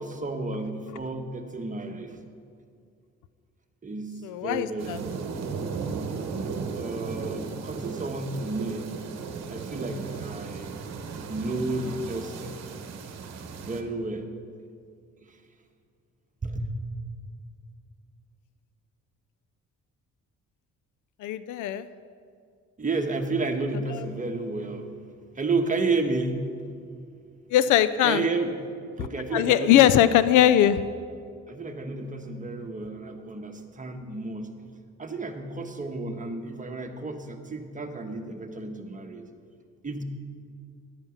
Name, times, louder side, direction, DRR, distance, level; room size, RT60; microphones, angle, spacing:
voice 1, 0.0-2.2 3.8-5.0 6.7-8.9 9.5-10.7 11.3-12.6 13.6-14.3 15.2-15.4 16.4-16.7 22.8-24.9 25.3-26.5 28.0-28.5 29.0-30.1 31.5-34.5 35.0-39.3 39.8-40.0, right 3 dB, 25° right, 4 dB, 1.2 m, -31 dB
voice 2, 4.2-5.0 21.2-21.9 23.9-24.0 27.5-28.2 29.3-30.8, left 11 dB, 85° left, 15 dB, 0.5 m, -20 dB
sound 1, 4.8-13.8, right 5 dB, 60° right, 1.1 m, -35 dB
11.5 x 8.9 x 5.8 m, 2.3 s
cardioid pair, 90°, 30 cm